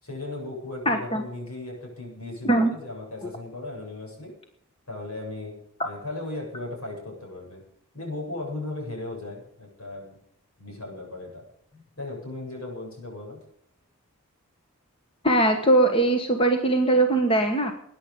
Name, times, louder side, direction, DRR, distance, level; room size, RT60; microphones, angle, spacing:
voice 1, 0.0-4.3 4.9-5.6 5.8-7.6 7.9-10.1 10.6-11.4 11.7-13.4, left 2 dB, 80° left, 0 dB, 7.7 m, -36 dB
voice 2, 0.9-1.2 2.4-2.7 15.2-17.7, right 2 dB, 25° left, 5 dB, 1.3 m, -21 dB
21.0 x 10.0 x 5.3 m, 0.71 s
head